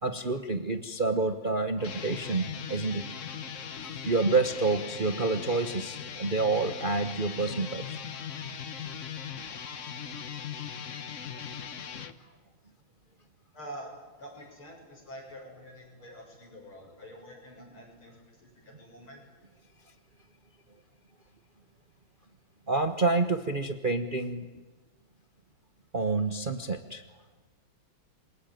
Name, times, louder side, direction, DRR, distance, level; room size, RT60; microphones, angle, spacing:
voice 1, 0.0-3.1 3.8-8.0 22.7-24.5 25.9-27.0, right 3 dB, 40° right, 7 dB, 0.8 m, -28 dB
sound 1, 1.7-12.1, left 7 dB, 45° left, 1.2 m, -39 dB
voice 2, 13.5-13.9 14.2-19.2, equal, 80° left, 0 dB, 8.1 m, -46 dB
27.0 x 22.5 x 9.2 m, 1.3 s
omnidirectional pair, 2.3 m